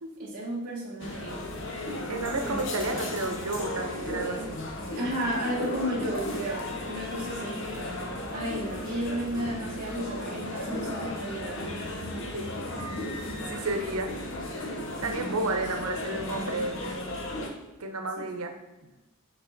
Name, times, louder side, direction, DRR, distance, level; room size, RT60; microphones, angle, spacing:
voice 1, 0.2-1.5 2.4-3.0 4.9-7.6 8.3-11.6 15.6-15.8 18.2-18.3, right 1 dB, 40° right, -6 dB, 1.1 m, -33 dB
sound 1, 1.0-17.5, left 1 dB, 60° left, 0.9 m, -35 dB
voice 2, 2.1-4.6 12.1-12.7 13.0-14.1 15.0-16.8 17.8-18.5, right 2 dB, 80° right, 5 dB, 0.9 m, -32 dB
6.9 x 4.1 x 4.0 m, 1.0 s
head